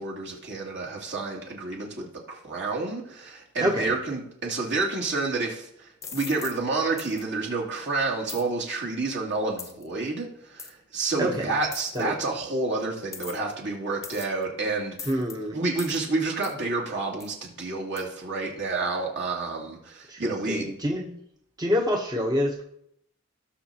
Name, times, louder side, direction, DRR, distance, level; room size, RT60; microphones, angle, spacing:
voice 1, 0.0-15.1 15.5-20.7, right 3 dB, 60° right, -2 dB, 2.6 m, -29 dB
voice 2, 3.6-3.9 11.2-11.5 11.9-12.1 15.1-15.6 20.1-21.2 21.6-22.6, equal, 20° right, 0 dB, 0.9 m, -27 dB
sound 1, 6.0-6.6 7.0-7.2 8.3-8.5 9.6-9.8 10.6-10.7 11.7-12.0 13.1-13.5 14.0-14.4 15.0-15.4 15.8-16.0 16.4-16.6 17.2-17.3 18.0-18.1, left 5 dB, 15° left, 0.8 m, -39 dB
17.0 x 6.6 x 2.9 m, 0.73 s
head